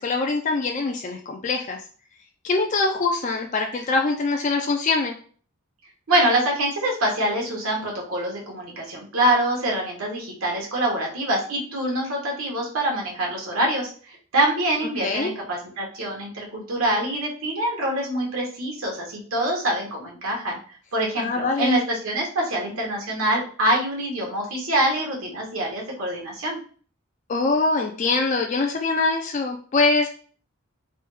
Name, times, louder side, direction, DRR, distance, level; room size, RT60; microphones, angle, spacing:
voice 1, 0.0-1.8 2.4-5.2 15.0-15.3 21.2-21.8 27.3-30.1, left 3 dB, 35° left, 2 dB, 0.3 m, -23 dB
voice 2, 6.1-20.6 20.9-26.6, right 1 dB, 85° right, -1 dB, 1.0 m, -25 dB
3.2 x 2.2 x 3.1 m, 0.43 s
head